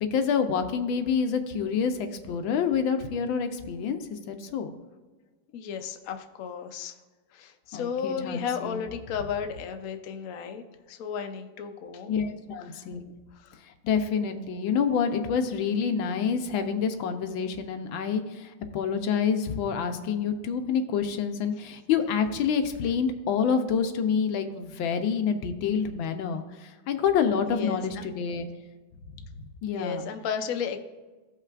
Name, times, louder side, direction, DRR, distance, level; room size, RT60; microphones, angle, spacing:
voice 1, 0.0-4.7 7.7-8.8 12.1-13.1 13.6-28.5 29.4-30.0, left 6 dB, 85° left, 7 dB, 1.5 m, -27 dB
voice 2, 5.5-6.9 7.3-10.6 10.9-12.1 12.7-12.8 13.3-13.6 27.5-28.1 29.7-30.8, left 7 dB, 65° left, 6 dB, 0.9 m, -34 dB
15.5 x 5.7 x 2.4 m, 1.3 s
omnidirectional pair, 2.2 m